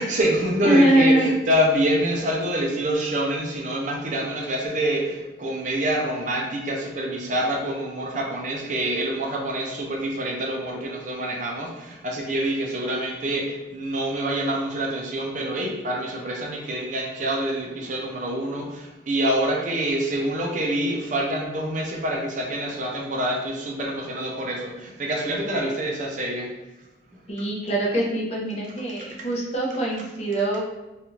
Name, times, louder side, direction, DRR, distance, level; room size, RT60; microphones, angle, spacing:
voice 1, 0.0-26.5, right 1 dB, 45° right, -1 dB, 0.5 m, -26 dB
voice 2, 0.6-1.3 27.3-30.6, right 1 dB, 35° left, -3 dB, 0.6 m, -22 dB
2.9 x 2.4 x 2.9 m, 1.0 s
head